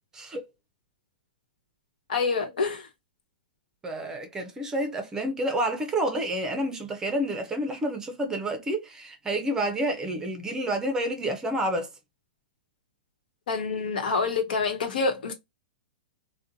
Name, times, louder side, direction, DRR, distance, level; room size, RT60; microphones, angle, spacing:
voice 1, 0.1-0.5 3.8-11.9, right 1 dB, 10° right, 0.6 m, -29 dB
voice 2, 2.1-2.9 13.5-15.3, left 4 dB, 75° left, 1.0 m, -27 dB
2.5 x 2.2 x 2.8 m
hypercardioid pair, 145°, 5 cm